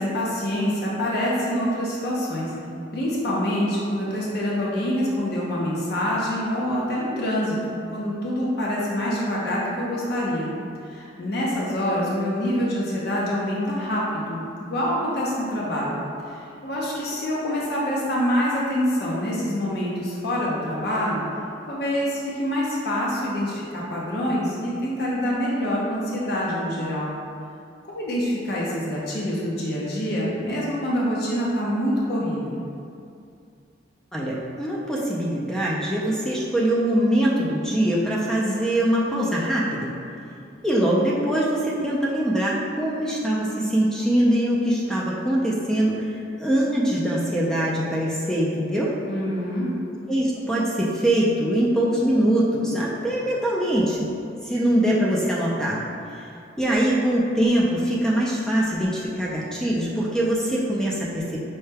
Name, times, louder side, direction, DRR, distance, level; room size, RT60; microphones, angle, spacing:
voice 1, 0.0-2.5 2.9-10.5 10.8-16.0 16.3-21.2 21.7-27.1 27.9-32.6 49.0-49.7, equal, 55° left, -5 dB, 0.6 m, -26 dB
voice 2, 34.1-39.9 40.6-48.9 50.1-54.1 54.4-55.8 56.1-56.3 56.6-61.4, right 1 dB, 5° left, -5 dB, 0.3 m, -23 dB
5.4 x 2.1 x 3.3 m, 2.4 s
head